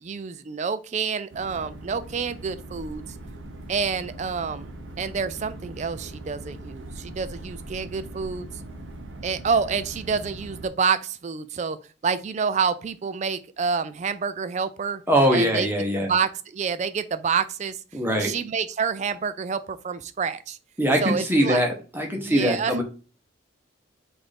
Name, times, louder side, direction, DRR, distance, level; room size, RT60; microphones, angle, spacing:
voice 1, 0.0-3.1 3.7-4.7 5.0-8.5 9.2-11.8 12.0-15.0 15.3-15.7 15.9-17.8 18.2-20.6 21.0-21.6 22.2-22.8, right 5 dB, 35° right, 0.3 m, -28 dB
sound 1, 1.3-10.7, right 1 dB, 70° right, 0.7 m, -40 dB
voice 2, 15.1-16.1 17.9-18.3 20.8-22.8, equal, 10° right, 0.8 m, -22 dB
5.9 x 2.6 x 3.3 m
head